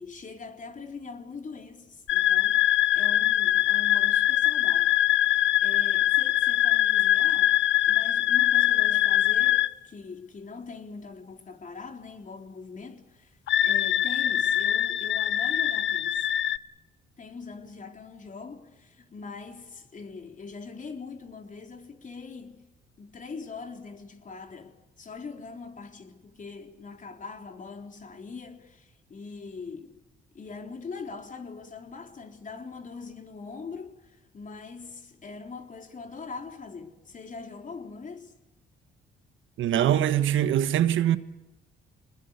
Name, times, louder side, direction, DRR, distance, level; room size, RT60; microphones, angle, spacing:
voice 1, 0.0-2.7 2.9-4.9 5.3-7.6 7.9-13.4 13.6-16.3 17.2-22.7 23.0-30.0 30.3-38.3, left 4 dB, 40° left, 4.0 m, -42 dB
sound 1, 2.1-9.7 13.5-16.6, left 13 dB, 70° left, 0.9 m, -23 dB
voice 2, 39.6-41.2, right 11 dB, 75° right, 1.4 m, -23 dB
26.0 x 20.5 x 8.3 m
cardioid pair, 90°, 20 cm